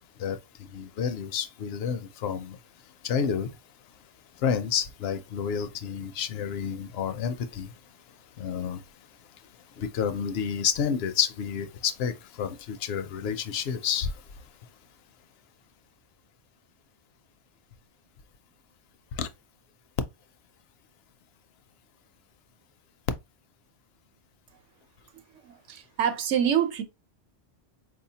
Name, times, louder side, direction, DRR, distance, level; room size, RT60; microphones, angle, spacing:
voice 1, 0.7-2.6 3.0-3.5 4.4-7.7 8.4-8.8 9.8-14.1 19.2-19.3, left 7 dB, 65° left, 0.7 m, -29 dB
voice 2, 25.3-26.8, right 9 dB, 80° right, 1.0 m, -26 dB
4.3 x 2.8 x 2.7 m
omnidirectional pair, 1.2 m